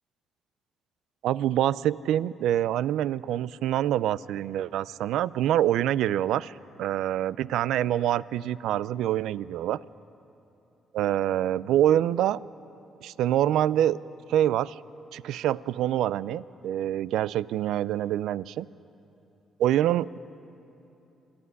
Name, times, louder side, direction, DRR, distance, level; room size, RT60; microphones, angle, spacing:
voice 1, 1.2-9.8 10.9-12.4 13.0-14.0 14.3-14.8 15.1-18.7 19.6-20.2, right 12 dB, 85° right, 19 dB, 0.4 m, -26 dB
27.0 x 11.5 x 9.6 m, 2.9 s
cardioid pair, 90°, 0 cm